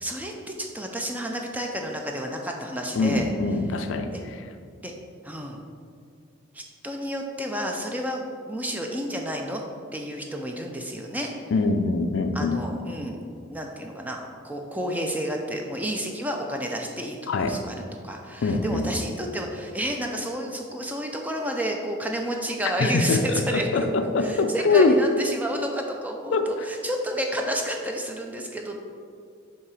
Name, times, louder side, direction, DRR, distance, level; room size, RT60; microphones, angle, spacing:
voice 1, 0.0-3.3 4.8-4.9 5.2-5.6 6.5-8.2 8.5-9.6 9.9-11.3 12.3-13.2 13.5-17.2 17.4-17.8 18.0-23.9 24.2-28.8, equal, 10° right, 2 dB, 0.4 m, -30 dB
voice 2, 3.0-4.4 11.5-12.6 17.3-17.6 18.4-18.9 22.8-23.2 23.5-25.0 26.3-26.5, left 3 dB, 65° left, 7 dB, 0.4 m, -23 dB
7.2 x 2.9 x 4.8 m, 2.3 s
head